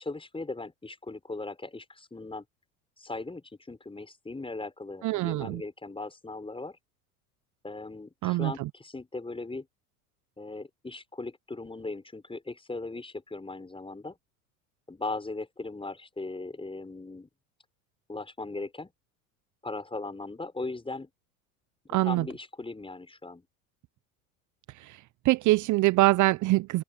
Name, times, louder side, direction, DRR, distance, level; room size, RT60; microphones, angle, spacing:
voice 1, 0.0-2.4 3.0-6.8 7.6-9.7 10.4-14.2 14.9-17.3 18.1-18.9 19.6-21.1 22.0-23.4, left 3 dB, 10° left, 6.7 m, -38 dB
voice 2, 5.0-5.6 8.2-8.7 21.9-22.3 24.8-26.8, right 18 dB, 45° right, 0.7 m, -24 dB
open air
hypercardioid pair, 80°, 43 cm